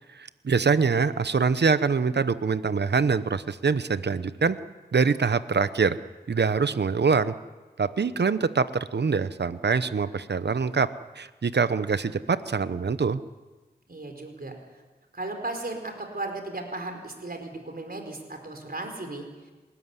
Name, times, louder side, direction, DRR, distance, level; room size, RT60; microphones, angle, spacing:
voice 1, 0.1-4.6 4.9-6.0 6.3-7.3 7.8-10.9 11.2-13.2, right 5 dB, 90° right, 13 dB, 0.9 m, -24 dB
voice 2, 13.9-14.5 15.1-19.5, right 2 dB, 60° right, 4 dB, 4.5 m, -36 dB
28.0 x 13.5 x 9.8 m, 1.2 s
wide cardioid pair, 50°, 17 cm